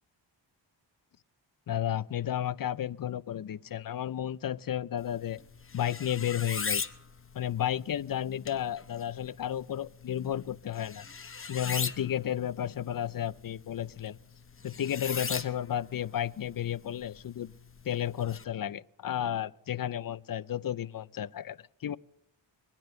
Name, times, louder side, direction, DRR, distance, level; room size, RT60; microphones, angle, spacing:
voice 1, 1.7-5.4 5.7-6.8 7.3-11.1 11.5-14.2 14.6-17.5 17.8-22.0, left 10 dB, 50° left, 0.5 m, -32 dB
sound 1, 5.0-18.4, left 5 dB, 30° left, 0.9 m, -40 dB
22.0 x 10.0 x 6.7 m
wide cardioid pair, 95°, 45 cm